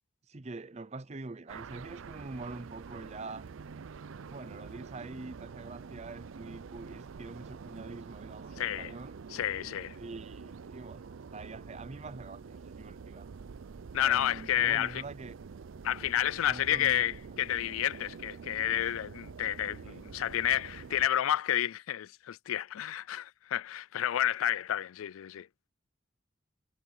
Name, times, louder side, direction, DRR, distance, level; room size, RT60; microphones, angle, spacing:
voice 1, 0.3-3.5 4.3-9.2 9.9-13.3 14.0-15.4 16.5-17.1 19.8-20.0, right 3 dB, 30° right, 0.6 m, -45 dB
sound 1, 1.5-21.1, right 5 dB, 75° right, 0.5 m, -46 dB
voice 2, 8.6-8.9 9.3-10.0 13.9-15.0 15.8-25.5, left 11 dB, 85° left, 0.3 m, -30 dB
head